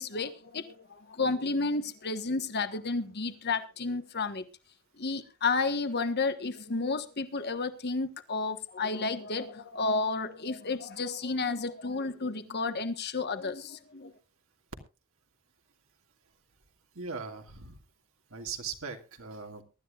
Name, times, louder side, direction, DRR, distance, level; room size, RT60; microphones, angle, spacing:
voice 1, 0.0-4.4 5.0-14.1, left 3 dB, 45° left, 1.3 m, -31 dB
voice 2, 16.9-17.8 18.3-19.6, right 5 dB, 65° right, 2.1 m, -39 dB
23.0 x 12.5 x 2.4 m
head